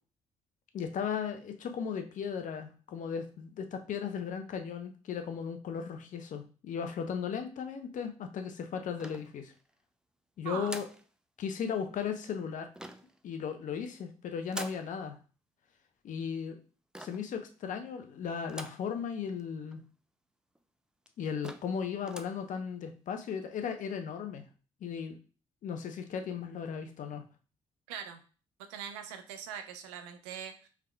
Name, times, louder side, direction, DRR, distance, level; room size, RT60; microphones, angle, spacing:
voice 1, 0.7-9.5 10.4-10.9 11.4-12.7 13.2-15.2 16.0-16.6 17.0-19.8 21.2-24.5 24.8-25.2 25.6-27.2, left 7 dB, 60° left, 6 dB, 0.7 m, -36 dB
sound 1, 9.0-9.7 10.6-11.1 12.7-13.2 14.5-14.9 16.9-17.3 18.5-18.9 19.4-19.5 19.7-19.8 20.5-20.6 21.1-21.2 21.4-21.8 22.0-22.4, right 1 dB, 5° right, 0.4 m, -44 dB
voice 2, 27.9-28.2 28.6-30.7, right 8 dB, 85° right, 7 dB, 0.5 m, -41 dB
4.7 x 3.5 x 2.2 m, 0.37 s
hypercardioid pair, 45°, 15 cm